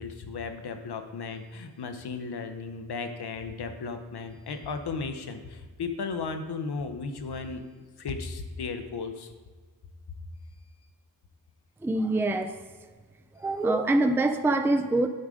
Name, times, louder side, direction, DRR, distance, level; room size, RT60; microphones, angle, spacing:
voice 1, 0.0-7.6 8.0-9.3, left 4 dB, 80° left, 8 dB, 0.8 m, -35 dB
voice 2, 11.8-12.5 13.4-15.1, right 2 dB, 5° right, 7 dB, 0.4 m, -24 dB
10.5 x 4.9 x 3.7 m, 1.4 s
wide cardioid pair, 130°, 39 cm